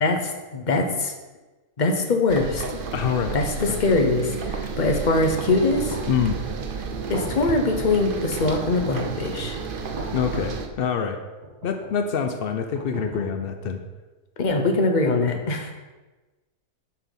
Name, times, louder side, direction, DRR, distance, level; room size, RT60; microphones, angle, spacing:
voice 1, 0.5-1.1 1.8-2.8 3.3-6.0 7.1-9.6 14.4-15.7, left 3 dB, 40° left, 4 dB, 0.8 m, -22 dB
sound 1, 2.3-10.7, right 5 dB, 50° right, 0.6 m, -32 dB
voice 2, 2.9-3.8 6.1-6.4 10.1-11.2 11.6-13.8, left 7 dB, 85° left, 7 dB, 0.5 m, -26 dB
sound 2, 5.5-6.2 6.9-7.6 8.4-9.1 10.0-10.7 11.4-12.0 12.7-13.6, right 1 dB, 75° right, 2.8 m, -37 dB
6.4 x 5.9 x 5.5 m, 1.2 s
omnidirectional pair, 1.7 m